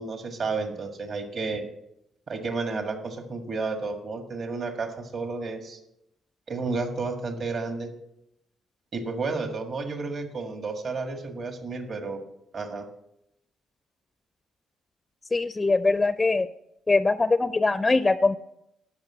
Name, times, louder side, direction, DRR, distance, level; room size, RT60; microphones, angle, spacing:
voice 1, 0.0-1.7 2.3-5.8 6.5-7.9 8.9-12.2 12.5-12.9, right 3 dB, 50° right, 5 dB, 1.7 m, -31 dB
voice 2, 15.3-16.5 16.9-18.4, left 3 dB, 20° left, 13 dB, 0.4 m, -22 dB
12.0 x 5.6 x 8.4 m, 0.81 s
cardioid pair, 90°, 0 cm